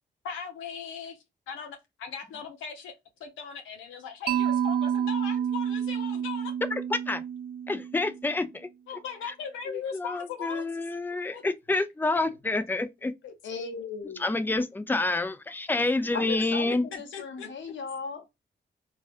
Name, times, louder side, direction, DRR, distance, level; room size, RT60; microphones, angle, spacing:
voice 1, 0.2-2.9 3.2-6.5 8.9-10.6 11.1-11.4 11.7-11.8 13.2-13.6 16.3-16.5 17.1-17.5, left 6 dB, 85° left, 0.6 m, -39 dB
Mallet percussion, 4.3-8.3, right 9 dB, 55° right, 0.4 m, -29 dB
voice 2, 6.7-7.2 7.7-8.7 9.7-13.1 14.2-16.9, left 2 dB, 10° left, 0.5 m, -28 dB
voice 3, 13.4-14.2 16.1-18.4, left 4 dB, 70° left, 1.0 m, -37 dB
3.2 x 2.3 x 2.5 m
supercardioid pair, 45°, 20 cm